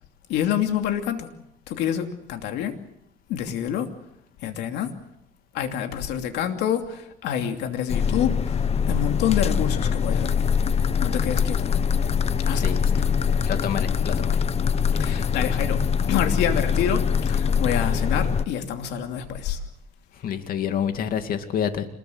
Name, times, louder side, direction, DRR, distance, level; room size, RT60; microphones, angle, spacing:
voice 1, 0.3-1.3 1.7-2.8 3.3-3.9 4.4-4.9 5.5-10.4 11.0-11.7 12.4-12.8 15.0-15.8 16.1-19.6, left 9 dB, 85° left, 5 dB, 2.8 m, -27 dB
sound 1, 7.9-18.5, left 7 dB, 40° left, 0.9 m, -23 dB
voice 2, 13.4-14.3 20.2-21.9, left 8 dB, 60° left, 7 dB, 2.6 m, -27 dB
27.0 x 21.5 x 8.0 m, 0.79 s
cardioid pair, 110°, 17 cm